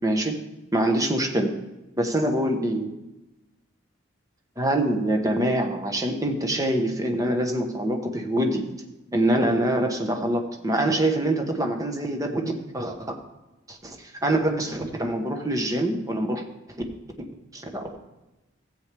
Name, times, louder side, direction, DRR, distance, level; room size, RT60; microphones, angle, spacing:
voice 1, 0.0-0.3 0.7-1.5 2.0-2.9 4.6-8.7 9.1-13.0 13.7-14.0 14.2-16.4 17.5-18.0, right 1 dB, 20° right, 3 dB, 1.1 m, -25 dB
14.5 x 8.2 x 3.4 m, 1.0 s
head